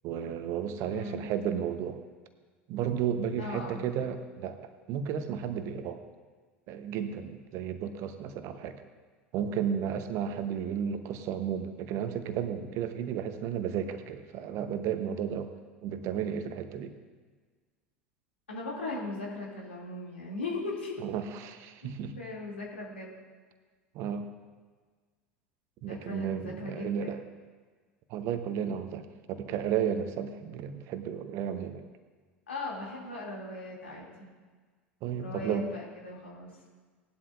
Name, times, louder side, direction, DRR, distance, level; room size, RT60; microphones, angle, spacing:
voice 1, 0.0-2.0 2.7-4.6 4.9-6.0 6.7-8.8 9.3-15.5 15.8-16.9 21.0-22.2 23.9-24.3 25.8-27.2 28.1-31.8 35.0-35.7, right 8 dB, 45° right, 9 dB, 0.9 m, -33 dB
voice 2, 0.9-1.3 3.4-3.9 18.5-21.1 22.2-23.1 25.9-27.2 32.5-34.3 35.2-36.5, left 2 dB, 75° left, -3 dB, 2.8 m, -38 dB
18.5 x 11.0 x 2.6 m, 1.5 s
figure-of-eight pair, 75°, 7 cm